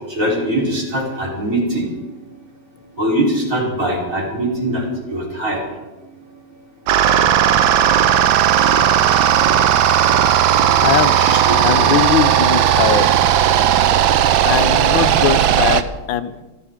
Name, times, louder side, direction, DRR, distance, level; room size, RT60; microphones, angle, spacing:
voice 1, 0.1-1.8 3.0-5.6 11.2-11.9, right 1 dB, 35° right, -3 dB, 4.2 m, -22 dB
sound 1, 6.9-15.8, right 10 dB, 75° right, 1.5 m, -15 dB
voice 2, 10.8-11.1 11.6-13.1 14.4-16.4, left 9 dB, 75° left, 13 dB, 1.4 m, -20 dB
29.0 x 12.5 x 3.7 m, 1.1 s
omnidirectional pair, 2.3 m